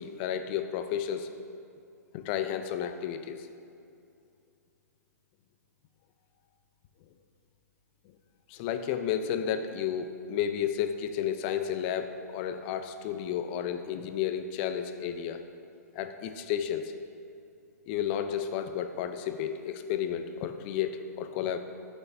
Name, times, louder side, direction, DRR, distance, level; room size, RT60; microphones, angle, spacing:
voice 1, 0.0-1.3 2.1-3.5 8.5-15.5 16.0-16.9 17.9-21.6, left 9 dB, 40° left, 8 dB, 0.5 m, -32 dB
12.0 x 6.3 x 2.6 m, 2.5 s
hypercardioid pair, 125°, 9 cm